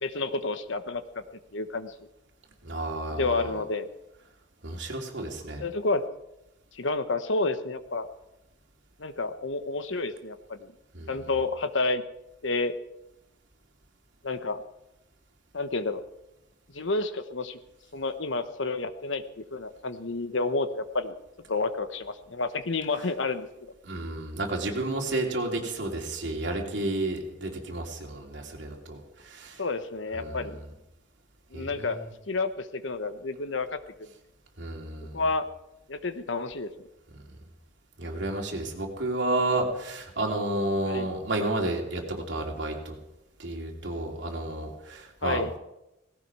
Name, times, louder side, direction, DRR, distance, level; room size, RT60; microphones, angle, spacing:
voice 1, 0.0-1.2 1.5-1.9 3.1-3.9 5.6-6.1 6.7-8.1 9.0-10.7 11.1-12.0 12.4-12.7 14.2-14.6 15.5-16.0 16.7-17.6 17.9-21.1 21.5-23.5 29.6-30.6 31.5-32.0 32.3-34.1 35.1-35.5 35.9-36.7 40.9-41.1 45.2-45.5, left 3 dB, 80° left, 11 dB, 1.1 m, -30 dB
voice 2, 2.6-3.6 4.6-5.6 10.9-11.2 23.8-29.6 30.1-30.6 31.5-32.0 34.6-35.2 38.0-42.9 43.4-45.4, right 2 dB, 70° right, 0 dB, 3.0 m, -31 dB
18.0 x 16.5 x 4.8 m, 0.91 s
head